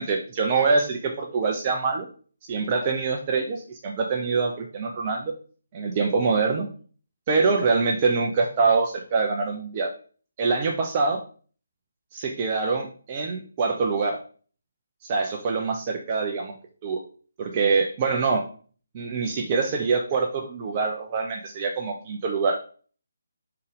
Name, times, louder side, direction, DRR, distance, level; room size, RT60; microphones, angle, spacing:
voice 1, 0.0-2.1 2.5-5.3 5.7-6.7 7.3-9.9 10.4-11.2 12.1-14.2 15.0-16.6 16.8-17.0 17.4-18.4 18.9-22.7, right 4 dB, 25° right, 2 dB, 0.8 m, -24 dB
5.5 x 3.9 x 4.9 m, 0.41 s
figure-of-eight pair, 145°, 0 cm